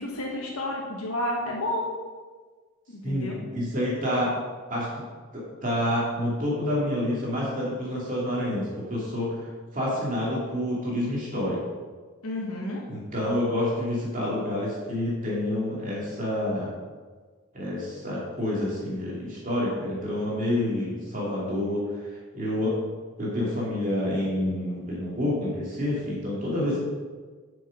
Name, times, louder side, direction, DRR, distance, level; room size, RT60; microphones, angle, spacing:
voice 1, 0.0-1.9 2.9-3.4 12.2-12.8, left 1 dB, 85° left, -3 dB, 1.6 m, -31 dB
voice 2, 3.0-4.3 4.7-5.0 5.3-9.3 9.7-11.6 12.9-16.7 17.5-22.8 23.2-26.8, left 1 dB, 35° right, -6 dB, 2.6 m, -28 dB
9.1 x 6.3 x 5.2 m, 1.4 s
head